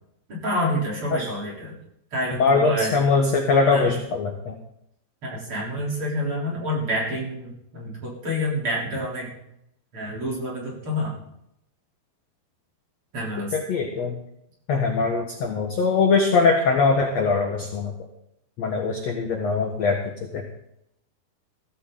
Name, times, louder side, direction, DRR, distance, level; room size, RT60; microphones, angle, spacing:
voice 1, 0.3-1.7 2.1-3.0 3.7-3.9 5.2-9.3 9.9-11.1 13.1-13.6, equal, 30° right, -3 dB, 3.9 m, -28 dB
voice 2, 2.4-4.5 13.5-14.2 14.7-17.9 18.6-20.0 20.3-20.4, left 4 dB, 75° left, 2 dB, 1.5 m, -21 dB
15.5 x 14.5 x 3.9 m, 0.79 s
omnidirectional pair, 5.1 m